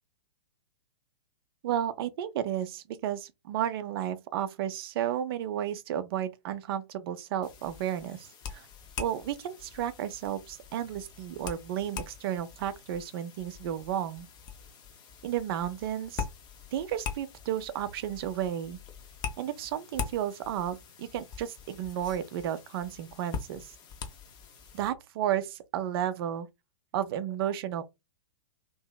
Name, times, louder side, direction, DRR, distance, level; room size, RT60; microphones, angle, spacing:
voice 1, 1.6-8.7 9.0-14.3 15.2-16.2 16.7-18.8 19.4-23.7 24.7-26.5 26.9-27.8, right 10 dB, 50° right, 0.5 m, -33 dB
sound 1, 7.4-24.9, left 6 dB, 25° left, 0.6 m, -43 dB
2.8 x 2.6 x 2.2 m
figure-of-eight pair, 110°, 16 cm